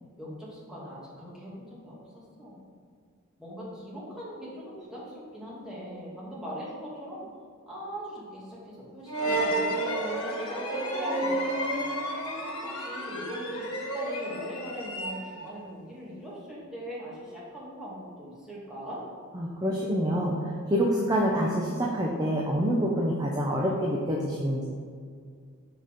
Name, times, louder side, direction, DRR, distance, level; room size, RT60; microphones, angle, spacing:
voice 1, 0.2-2.0 2.4-2.7 3.4-7.3 7.7-11.4 11.8-11.9 12.6-19.1, equal, 5° right, -7 dB, 1.6 m, -41 dB
sound 1, 9.1-15.5, right 1 dB, 85° left, 1.3 m, -31 dB
voice 2, 19.3-24.6, equal, 20° right, -3 dB, 0.6 m, -27 dB
6.0 x 4.1 x 4.9 m, 2.1 s
head